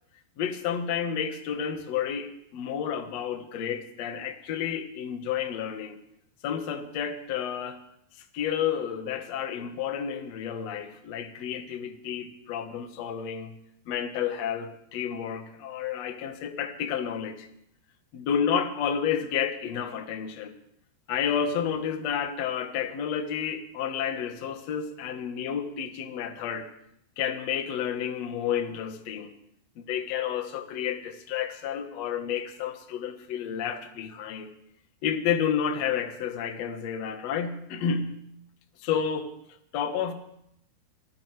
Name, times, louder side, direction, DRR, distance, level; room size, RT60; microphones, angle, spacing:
voice 1, 0.4-6.0 6.4-7.8 8.3-13.5 13.9-17.5 18.1-20.5 21.1-26.7 27.2-29.3 29.8-34.5 35.0-38.1 38.8-39.4 39.7-40.1, left 8 dB, 60° left, 6 dB, 1.7 m, -30 dB
26.5 x 16.0 x 3.3 m, 0.73 s
omnidirectional pair, 4.9 m